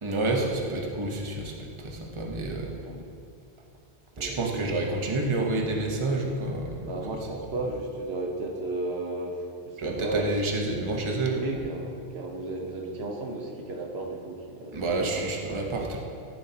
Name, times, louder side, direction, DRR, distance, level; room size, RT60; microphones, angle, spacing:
voice 1, 0.0-2.7 4.2-6.9 9.8-11.4 14.7-16.0, right 2 dB, 30° right, 0 dB, 1.0 m, -29 dB
voice 2, 2.7-3.0 4.1-4.7 6.9-10.5 11.3-15.2, right 2 dB, 70° right, 1 dB, 1.2 m, -34 dB
14.0 x 7.3 x 2.9 m, 2.5 s
omnidirectional pair, 1.1 m